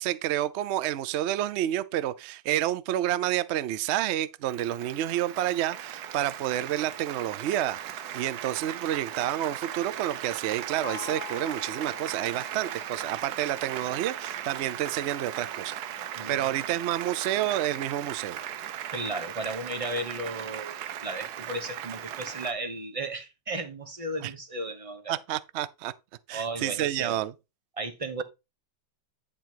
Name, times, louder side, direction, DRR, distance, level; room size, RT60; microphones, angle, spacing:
voice 1, 0.0-18.4 24.2-24.3 25.1-25.9 26.3-27.3, right 12 dB, 90° right, 0.6 m, -29 dB
Applause, 4.5-22.5, right 11 dB, 70° right, 1.1 m, -38 dB
Gong, 10.8-14.3, left 12 dB, 50° left, 0.9 m, -45 dB
voice 2, 16.1-16.8 18.9-25.1 26.3-27.2 27.8-28.2, right 2 dB, 25° right, 0.9 m, -35 dB
10.0 x 3.8 x 4.5 m
omnidirectional pair, 1.9 m